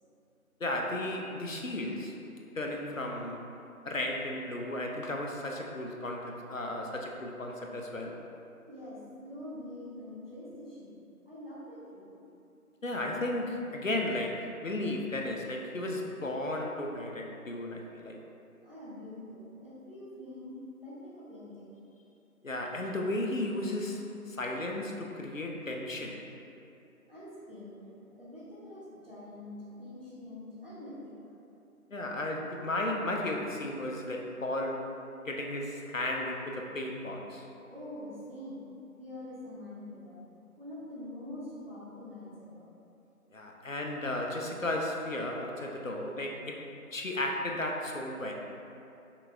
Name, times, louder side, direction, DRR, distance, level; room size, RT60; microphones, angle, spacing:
voice 1, 0.6-2.2 2.6-3.4 3.9-8.2 12.8-18.2 22.4-26.2 31.9-34.9 35.2-37.5 43.3-48.3, left 1 dB, 60° left, 1 dB, 0.5 m, -34 dB
voice 2, 8.6-11.0 11.3-12.3 18.6-21.8 27.1-31.1 37.6-40.2 40.6-42.7, left 1 dB, 40° right, -9 dB, 1.0 m, -45 dB
5.7 x 2.4 x 3.4 m, 2.7 s
figure-of-eight pair, 175°, 45 cm